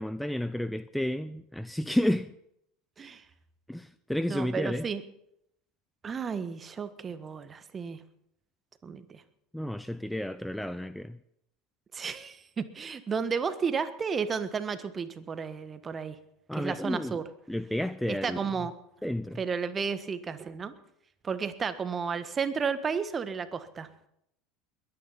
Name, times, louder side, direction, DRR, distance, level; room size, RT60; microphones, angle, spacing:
voice 1, 0.0-2.3 3.7-4.9 9.5-11.2 16.5-18.4 19.0-19.4, left 1 dB, 5° left, 13 dB, 0.6 m, -31 dB
voice 2, 4.3-5.0 6.0-8.0 8.8-9.2 11.9-16.1 16.6-17.3 18.1-18.7 19.3-20.7 21.2-23.9, right 6 dB, 30° right, 12 dB, 1.5 m, -32 dB
21.5 x 10.0 x 5.7 m, 0.75 s
hypercardioid pair, 80°, 0 cm